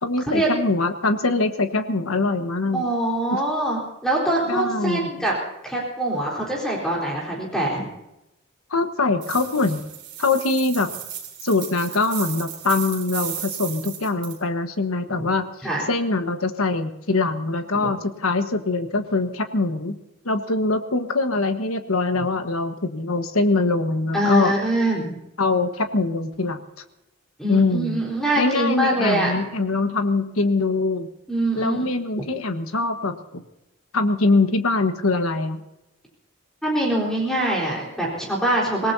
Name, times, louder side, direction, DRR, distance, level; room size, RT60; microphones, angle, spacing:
voice 1, 0.0-2.8 3.3-3.4 4.5-5.2 8.7-9.8 10.2-10.9 11.4-15.4 15.9-20.0 20.2-24.5 25.4-26.6 27.5-28.0 28.4-31.1 31.5-33.4 33.9-35.6, left 3 dB, 85° left, 7 dB, 1.4 m, -23 dB
voice 2, 2.7-5.3 5.6-7.9 15.1-15.3 15.6-15.9 17.7-17.9 24.1-25.2 27.4-29.4 31.3-31.9 36.6-38.9, right 1 dB, 5° left, -4 dB, 4.1 m, -24 dB
sound 1, 9.2-14.4, right 10 dB, 50° right, 3.7 m, -35 dB
26.0 x 18.0 x 2.8 m, 0.90 s
head